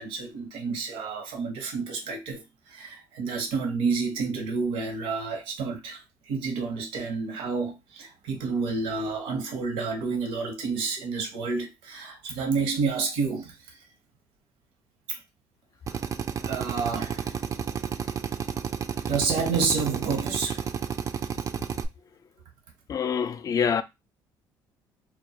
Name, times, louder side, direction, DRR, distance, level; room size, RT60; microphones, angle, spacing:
voice 1, 0.0-13.8 15.1-15.2 16.4-17.4 19.1-20.7, right 4 dB, 80° right, 0.8 m, -29 dB
Drill, 15.9-21.9, right 7 dB, 35° right, 0.3 m, -31 dB
voice 2, 22.9-23.8, left 7 dB, 40° left, 0.3 m, -25 dB
2.2 x 2.1 x 2.7 m
supercardioid pair, 80°, 9 cm